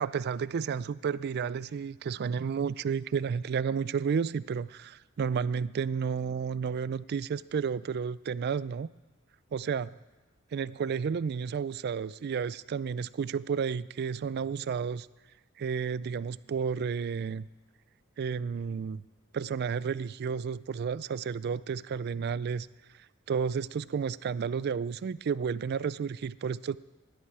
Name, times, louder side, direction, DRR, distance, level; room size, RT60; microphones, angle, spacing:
voice 1, 0.0-8.9 9.5-9.9 10.5-15.1 15.6-17.5 18.2-19.0 19.3-22.7 23.3-26.8, right 6 dB, 50° right, 19 dB, 0.3 m, -31 dB
17.0 x 11.5 x 4.8 m, 1.2 s
head